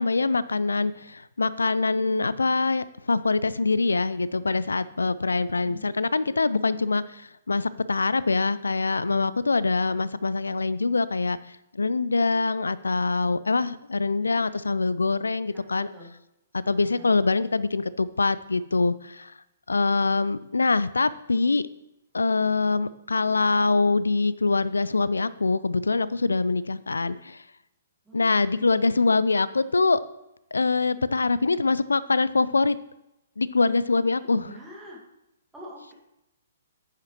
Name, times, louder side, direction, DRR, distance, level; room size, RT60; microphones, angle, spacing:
voice 1, 0.0-7.2 7.5-11.4 11.7-15.9 16.7-19.3 19.7-21.6 22.1-27.4 28.1-30.0 30.5-32.8 33.4-34.5, left 3 dB, 70° left, 17 dB, 0.4 m, -24 dB
voice 2, 15.5-16.1 16.6-17.1 28.1-29.1 34.2-35.0 35.5-35.9, equal, 5° right, -4 dB, 1.9 m, -46 dB
9.9 x 8.3 x 3.0 m, 0.88 s
figure-of-eight pair, 120°, 0 cm